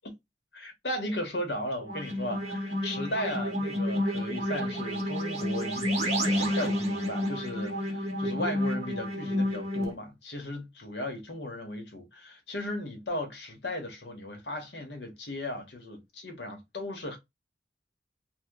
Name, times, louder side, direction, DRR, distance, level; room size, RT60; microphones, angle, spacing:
voice 1, 0.5-17.2, left 1 dB, 70° left, 1.1 m, -36 dB
sound 1, 1.8-9.9, equal, 40° right, 1.1 m, -30 dB
2.8 x 2.2 x 3.5 m
head